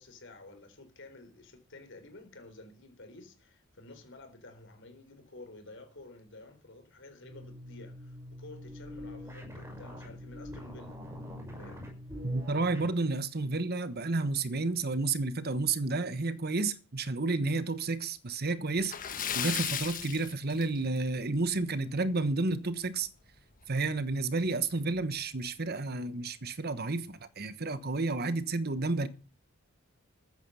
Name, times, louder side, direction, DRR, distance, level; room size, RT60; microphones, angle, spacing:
voice 1, 0.0-11.0 11.6-11.9, left 2 dB, 60° left, 4.0 m, -51 dB
sound 1, 7.2-12.9, left 1 dB, 15° right, 5.9 m, -44 dB
voice 2, 12.2-18.9 19.3-23.1 23.7-29.1, right 3 dB, 50° right, 1.2 m, -31 dB
Splash splatter, 18.8-21.1 21.5-21.6 22.1-22.2 23.6-23.7 24.0-24.1 24.8-25.0, left 8 dB, 40° left, 1.3 m, -35 dB
14.5 x 9.3 x 5.6 m
head